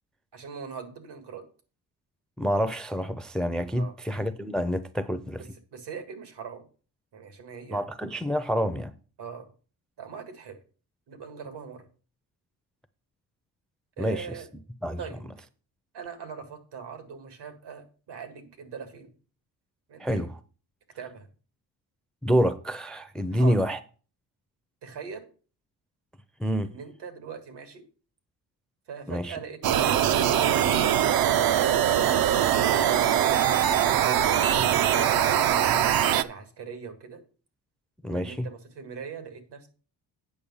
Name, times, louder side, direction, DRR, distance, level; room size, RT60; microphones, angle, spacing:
voice 1, 0.3-1.4 3.7-4.0 5.7-6.7 7.1-7.8 9.2-9.5 10.0-10.6 11.1-11.8 14.0-14.5 15.0-15.2 15.9-19.1 19.9-20.3 20.9-21.3 23.3-23.6 24.8-25.3 26.6-27.8 28.9-30.7 31.4-31.9 32.6-37.2 38.0-39.7, right 6 dB, 75° right, 2.0 m, -41 dB
voice 2, 2.4-5.4 7.7-8.9 14.0-14.3 14.8-15.0 20.0-20.4 22.2-23.8 26.4-26.7 29.1-29.3 38.0-38.5, equal, ahead, 0.4 m, -27 dB
sound 1, 29.6-36.2, right 10 dB, 60° right, 0.6 m, -22 dB
8.6 x 6.3 x 5.5 m
cardioid pair, 125°, 41 cm